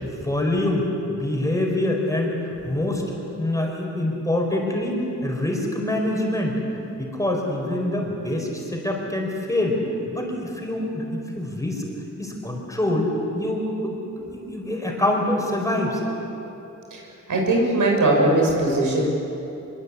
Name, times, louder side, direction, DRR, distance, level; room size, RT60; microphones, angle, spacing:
voice 1, 0.0-3.0 3.4-6.5 7.0-9.8 10.1-11.8 12.2-16.0, left 1 dB, 10° left, 0 dB, 4.7 m, -25 dB
voice 2, 16.9-19.0, right 2 dB, 85° right, -1 dB, 6.5 m, -20 dB
25.5 x 23.0 x 8.5 m, 3.0 s
wide cardioid pair, 155°, 31 cm